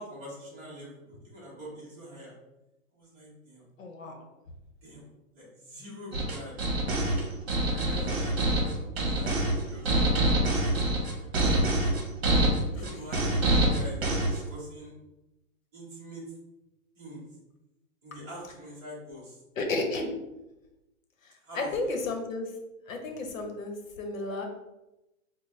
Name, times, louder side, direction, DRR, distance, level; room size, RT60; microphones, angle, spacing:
voice 1, 0.0-2.3 2.9-3.6 4.8-5.1 5.3-6.6 7.6-8.3 8.6-11.7 12.7-14.9 15.7-16.2 17.0-17.2 18.0-19.4 21.4-22.0, equal, 15° right, -7 dB, 0.8 m, -45 dB
voice 2, 3.8-4.2 19.6-20.1 21.6-22.5 22.9-24.5, left 2 dB, 65° left, 3 dB, 0.8 m, -32 dB
sound 1, 6.1-14.4, right 1 dB, 45° right, 1.0 m, -25 dB
3.9 x 2.1 x 3.2 m, 0.97 s
hypercardioid pair, 165°, 42 cm